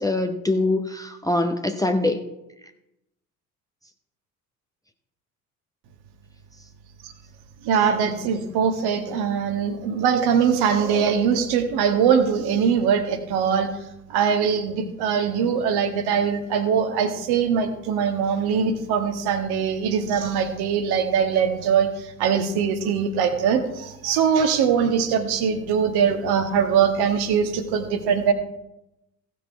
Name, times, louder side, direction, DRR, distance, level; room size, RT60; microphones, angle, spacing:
voice 1, 0.0-2.2, left 2 dB, 10° left, 5 dB, 0.9 m, -23 dB
voice 2, 7.6-13.7 14.1-28.3, right 7 dB, 55° right, 7 dB, 1.5 m, -22 dB
16.0 x 6.0 x 4.6 m, 0.90 s
figure-of-eight pair, 55°, 45 cm